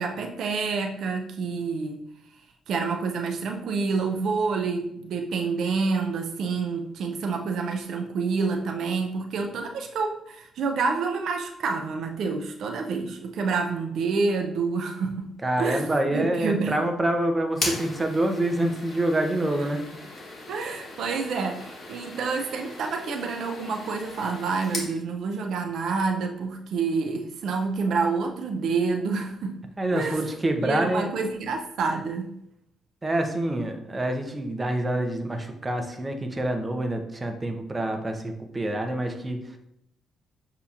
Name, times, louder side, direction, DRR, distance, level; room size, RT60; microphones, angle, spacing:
voice 1, 0.0-2.0 2.7-15.8 16.1-16.7 20.5-29.6 29.9-30.2 30.6-32.3, right 4 dB, 70° right, 4 dB, 0.4 m, -28 dB
voice 2, 15.4-19.8 29.8-31.1 33.0-39.6, right 1 dB, 20° right, 4 dB, 0.7 m, -26 dB
sound 1, 17.5-24.9, left 2 dB, 45° left, 1.3 m, -37 dB
6.7 x 2.8 x 2.4 m, 0.76 s
cardioid pair, 90°, 0 cm